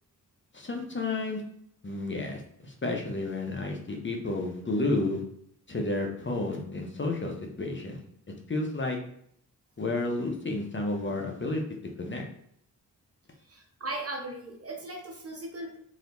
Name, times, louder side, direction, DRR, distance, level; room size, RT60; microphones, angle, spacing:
voice 1, 0.5-1.4 1.8-5.2 5.7-8.0 8.5-9.0 9.8-11.6 12.0-12.2, left 2 dB, 30° left, 1 dB, 0.8 m, -31 dB
voice 2, 13.5-15.8, right 2 dB, 35° right, 1 dB, 0.9 m, -38 dB
3.2 x 2.8 x 2.6 m, 0.68 s
supercardioid pair, 45°, 42 cm